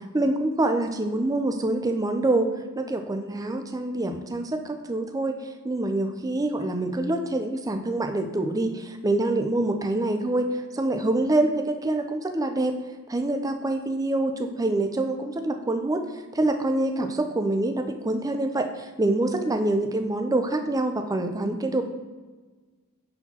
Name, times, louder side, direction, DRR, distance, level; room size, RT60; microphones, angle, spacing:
voice 1, 0.1-5.4 5.6-12.8 13.1-16.1 16.3-21.8, right 2 dB, 15° right, 6 dB, 0.5 m, -26 dB
9.7 x 4.5 x 2.8 m, 1.3 s
head